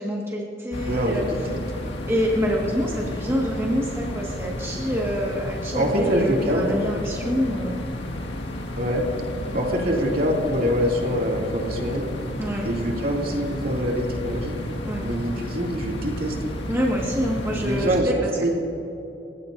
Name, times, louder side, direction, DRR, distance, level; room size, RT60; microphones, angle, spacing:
voice 1, 0.0-1.2 2.1-7.8 12.4-12.7 14.8-15.0 16.7-18.6, equal, 15° right, -4 dB, 1.7 m, -26 dB
sound 1, 0.7-18.0, left 1 dB, 80° left, 1.8 m, -32 dB
voice 2, 0.8-1.6 5.7-6.7 8.7-9.0 9.5-12.1 12.6-14.5 15.0-16.4 17.6-18.1 18.4-18.5, equal, 55° right, -1 dB, 2.4 m, -24 dB
30.0 x 16.5 x 2.6 m, 2.9 s
head